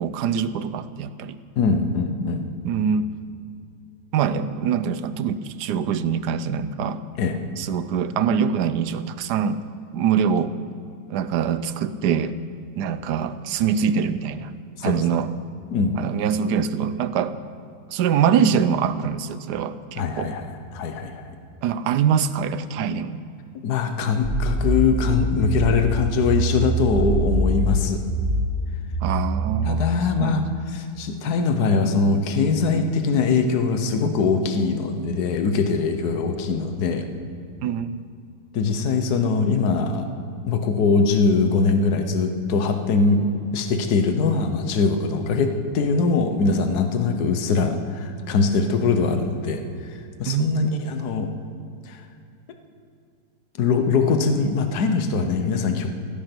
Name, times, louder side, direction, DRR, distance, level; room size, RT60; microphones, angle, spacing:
voice 1, 0.0-1.4 2.6-3.1 4.1-7.0 7.6-9.6 9.9-10.5 11.1-12.4 12.8-14.5 14.8-15.3 15.9-17.4 17.9-20.3 21.6-23.2 29.0-29.9 30.2-30.4 37.6-38.0 50.3-50.9, right 7 dB, 80° right, 13 dB, 1.2 m, -24 dB
voice 2, 1.6-2.4 7.2-7.4 14.8-15.0 15.7-16.0 20.0-21.3 23.6-28.0 29.7-37.0 38.5-40.0 40.5-43.3 43.5-49.6 50.2-51.3 51.9-52.0 53.6-55.9, left 4 dB, 70° left, 7 dB, 1.6 m, -22 dB
sound 1, 24.2-29.7, right 1 dB, 30° right, 2.1 m, -24 dB
16.0 x 12.5 x 6.0 m, 2.4 s
omnidirectional pair, 1.8 m